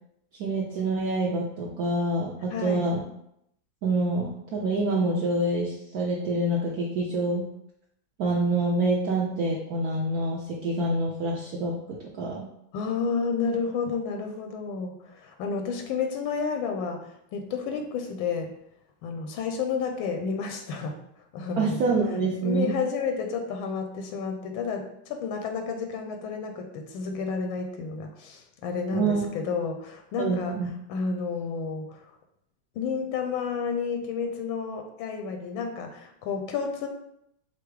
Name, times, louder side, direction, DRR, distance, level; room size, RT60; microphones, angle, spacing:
voice 1, 0.4-3.0 3.8-7.5 8.2-12.5 21.6-22.7 28.9-29.3 30.2-30.7, right 2 dB, 65° right, -3 dB, 0.9 m, -26 dB
voice 2, 2.5-2.9 12.7-18.5 19.0-21.0 21.3-21.9 22.4-30.6 30.9-32.0 32.8-36.9, left 5 dB, 85° left, 4 dB, 1.4 m, -31 dB
5.7 x 2.0 x 4.6 m, 0.76 s
omnidirectional pair, 2.1 m